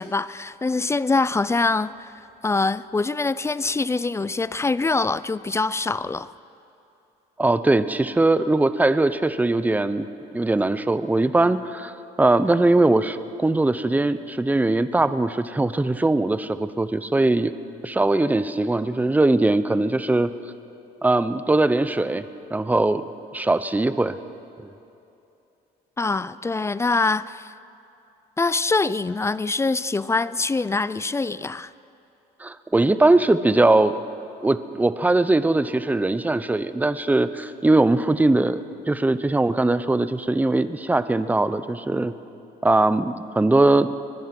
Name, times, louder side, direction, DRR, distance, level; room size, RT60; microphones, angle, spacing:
voice 1, 0.0-2.1 2.4-6.3 26.0-27.5 28.4-31.7, left 3 dB, 15° left, 17 dB, 0.4 m, -24 dB
voice 2, 7.4-10.1 10.3-11.9 12.2-17.5 17.8-20.3 21.0-22.2 22.5-23.1 23.3-24.2 32.4-33.9 34.4-38.6 38.9-42.1 42.6-43.9, right 2 dB, 10° right, 13 dB, 0.8 m, -20 dB
23.0 x 20.5 x 6.1 m, 2.8 s
cardioid pair, 110°, 17 cm